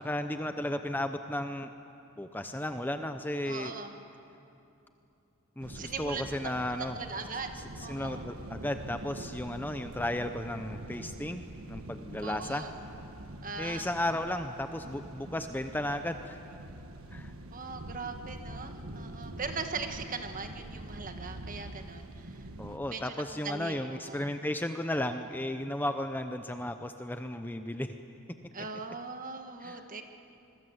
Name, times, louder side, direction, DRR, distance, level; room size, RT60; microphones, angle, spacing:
voice 1, 0.0-1.7 2.2-3.7 5.6-7.0 7.8-12.7 13.6-16.4 17.1-17.3 22.6-27.9 29.6-29.8, left 1 dB, 10° left, 7 dB, 0.7 m, -34 dB
voice 2, 3.4-3.9 5.7-6.5 6.9-8.2 12.2-12.7 13.4-13.9 17.5-22.5 22.9-24.3 28.5-30.0, right 4 dB, 40° right, 5 dB, 1.6 m, -40 dB
sound 1, 5.6-22.8, right 1 dB, 85° right, 1.4 m, -45 dB
26.5 x 22.0 x 8.0 m, 2.8 s
head